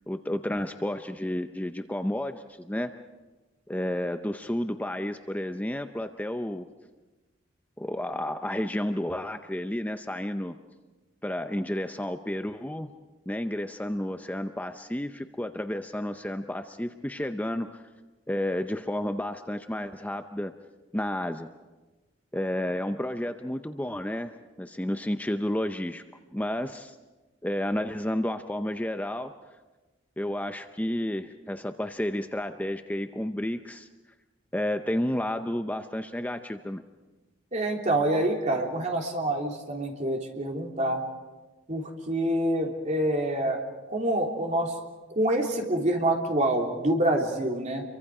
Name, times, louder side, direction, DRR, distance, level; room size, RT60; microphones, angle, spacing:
voice 1, 0.1-2.9 3.7-6.7 7.8-10.6 11.2-12.9 13.3-17.8 18.3-20.5 20.9-21.5 22.3-24.3 24.6-26.0 26.3-27.0 27.4-29.3 30.2-33.9 34.5-36.8, left 1 dB, 10° left, 7 dB, 0.6 m, -31 dB
voice 2, 37.5-41.0 41.7-43.6 43.9-44.7 45.1-47.8, right 1 dB, 40° right, 1 dB, 3.2 m, -26 dB
29.5 x 24.0 x 4.9 m, 1.2 s
head